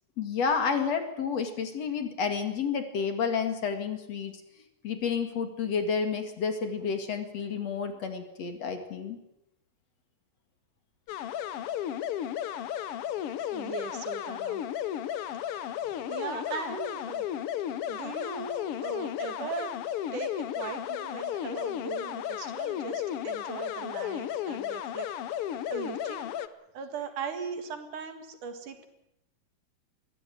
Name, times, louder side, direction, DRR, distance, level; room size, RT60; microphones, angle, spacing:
voice 1, 0.2-4.4 4.8-9.2, left 6 dB, 55° left, 7 dB, 3.0 m, -30 dB
sound 1, 11.1-26.5, left 10 dB, 75° left, 1.3 m, -34 dB
voice 2, 13.5-14.6 15.4-15.6 16.1-17.4 17.9-19.7 20.1-25.1 25.5-26.5 26.7-28.9, right 6 dB, 70° right, 8 dB, 3.5 m, -39 dB
22.5 x 15.5 x 9.4 m, 0.85 s
omnidirectional pair, 3.8 m